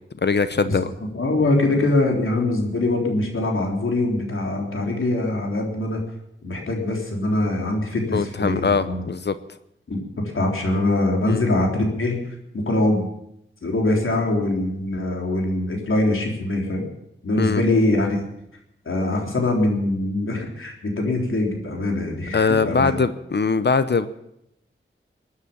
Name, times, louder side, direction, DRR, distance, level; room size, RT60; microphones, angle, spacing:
voice 1, 0.2-0.9 8.1-9.3 11.3-11.4 17.4-17.6 22.3-24.1, left 4 dB, 55° left, 13 dB, 0.8 m, -21 dB
voice 2, 1.1-6.0 6.4-9.1 9.9-12.2 12.5-13.1 13.6-16.9 17.2-18.2 18.9-23.0, left 2 dB, 75° left, 1 dB, 3.7 m, -23 dB
20.0 x 9.8 x 7.2 m, 0.78 s
wide cardioid pair, 65°, 21 cm